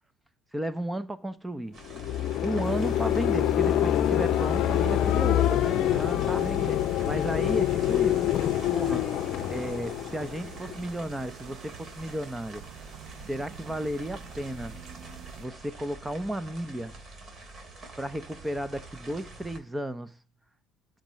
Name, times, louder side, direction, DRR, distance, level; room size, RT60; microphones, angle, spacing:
voice 1, 0.5-1.8 2.4-8.3 8.7-12.7 13.3-14.8 15.4-16.9 18.0-20.2, right 1 dB, 10° right, 0.8 m, -34 dB
sound 1, 1.7-19.6, right 2 dB, 40° right, 3.0 m, -47 dB
sound 2, 1.8-10.9, left 12 dB, 60° left, 0.7 m, -26 dB
sound 3, 2.6-15.5, right 8 dB, 60° right, 1.1 m, -47 dB
12.5 x 5.1 x 3.1 m
hypercardioid pair, 60°, 0 cm